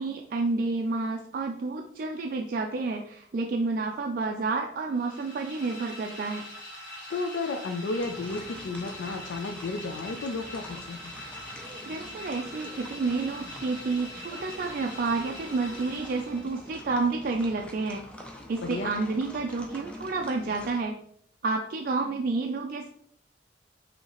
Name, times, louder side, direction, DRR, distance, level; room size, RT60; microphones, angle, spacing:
voice 1, 0.0-6.4 11.8-18.0 18.5-21.0 21.4-22.9, right 3 dB, 50° right, 2 dB, 0.3 m, -30 dB
sound 1, 4.9-16.8, left 1 dB, 40° left, 1.5 m, -43 dB
voice 2, 7.1-11.1 18.6-19.1, left 3 dB, 85° left, 5 dB, 0.4 m, -33 dB
sound 2, 8.0-20.8, left 1 dB, 5° left, 0.5 m, -46 dB
5.4 x 2.8 x 2.9 m, 0.66 s
head